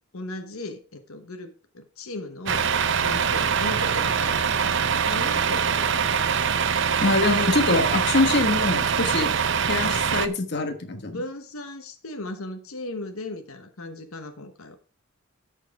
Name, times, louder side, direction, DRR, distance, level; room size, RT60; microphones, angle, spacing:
voice 1, 0.1-2.7 3.0-5.8 10.9-14.8, left 2 dB, 90° left, 8 dB, 1.1 m, -37 dB
Truck, 2.5-10.3, right 7 dB, 60° right, 0.6 m, -23 dB
voice 2, 7.0-9.3 9.7-11.2, left 2 dB, 55° left, 6 dB, 1.3 m, -24 dB
13.0 x 4.7 x 4.6 m, 0.37 s
head